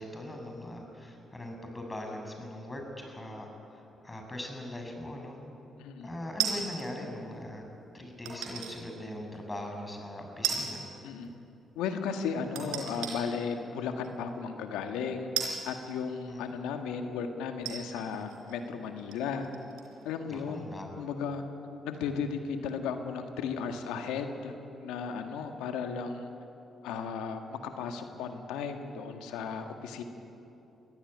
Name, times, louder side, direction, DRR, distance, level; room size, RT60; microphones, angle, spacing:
voice 1, 0.0-5.4 6.0-7.6 7.9-10.8 16.3-16.4 20.3-20.9, left 1 dB, 20° left, 3 dB, 6.4 m, -40 dB
sound 1, 6.4-6.9 8.3-8.8 9.3-9.4 10.4-10.9 11.2-11.3 12.5-13.2 14.0-14.2 15.4-16.5 17.1-17.2 17.6-20.1 20.3-20.4, right 8 dB, 85° right, 4.0 m, -35 dB
voice 2, 11.7-15.3 15.6-19.5 20.0-20.7 21.0-21.4 21.8-24.5 24.8-26.3 26.8-30.0, left 6 dB, 85° left, 6 dB, 1.7 m, -35 dB
22.0 x 15.5 x 10.0 m, 2.8 s
hypercardioid pair, 50°, 0 cm